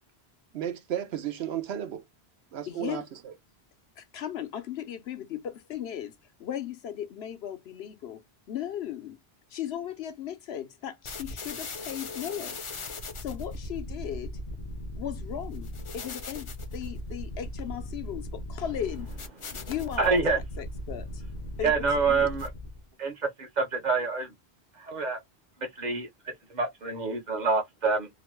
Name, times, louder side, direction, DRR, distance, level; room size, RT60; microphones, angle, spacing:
voice 1, 0.5-2.0 2.5-3.3, right 10 dB, 80° right, 0.9 m, -34 dB
voice 2, 2.7-3.1 4.0-8.2 8.5-9.2 9.5-12.6 13.2-14.4 15.0-19.1 19.5-21.2 21.6-22.3, left 10 dB, 80° left, 0.9 m, -37 dB
sound 1, 11.0-22.8, left 1 dB, 40° left, 0.5 m, -38 dB
voice 3, 20.0-20.4 21.6-22.5 23.0-24.3 24.8-25.2 25.6-28.1, right 4 dB, 50° right, 0.8 m, -27 dB
2.9 x 2.1 x 3.0 m
omnidirectional pair, 1.1 m